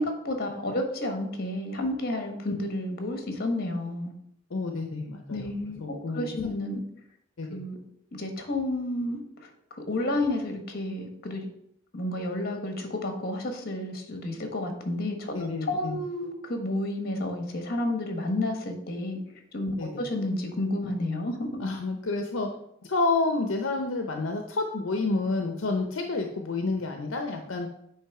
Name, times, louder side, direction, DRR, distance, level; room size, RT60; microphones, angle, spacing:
voice 1, 0.0-4.1 5.3-6.8 7.5-7.8 8.1-11.5 11.9-19.2 19.5-21.6, left 1 dB, 50° left, 5 dB, 1.3 m, -31 dB
voice 2, 4.5-5.5 5.8-6.3 7.4-7.6 15.3-16.0 19.8-20.0 21.6-22.5 22.8-27.7, left 3 dB, 70° left, 4 dB, 0.7 m, -29 dB
8.7 x 3.1 x 4.8 m, 0.74 s
head